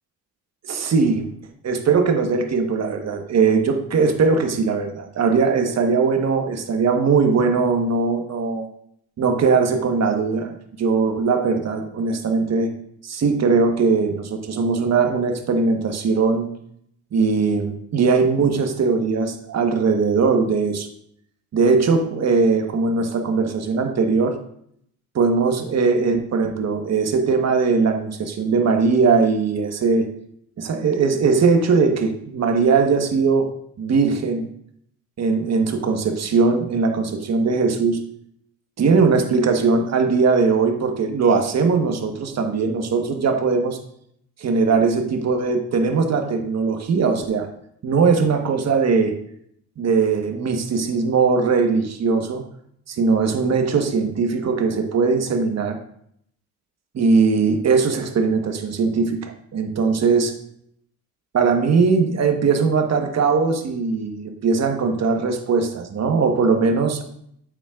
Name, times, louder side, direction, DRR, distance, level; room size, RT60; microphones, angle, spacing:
voice 1, 0.7-1.3 1.6-8.7 9.2-10.5 10.8-12.7 13.0-16.5 17.1-20.9 21.5-24.3 25.2-30.1 30.6-33.5 33.8-34.5 35.2-38.0 38.8-43.8 44.4-47.5 47.8-49.2 49.8-52.4 52.9-55.8 56.9-60.3 61.3-67.0, right 4 dB, 45° right, 5 dB, 1.3 m, -20 dB
8.8 x 7.2 x 2.4 m, 0.70 s
cardioid pair, 85°, 36 cm